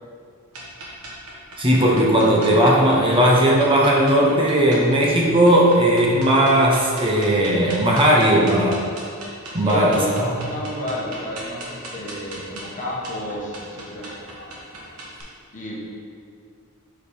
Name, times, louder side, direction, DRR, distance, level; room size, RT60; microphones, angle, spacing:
sound 1, 0.5-15.2, right 1 dB, 80° right, 1.3 m, -39 dB
voice 1, 1.6-8.8 9.5-10.3, right 1 dB, 25° right, -3 dB, 0.6 m, -17 dB
voice 2, 9.6-14.1 15.5-15.8, left 1 dB, 35° left, -4 dB, 1.1 m, -31 dB
5.2 x 5.0 x 4.2 m, 2.3 s
head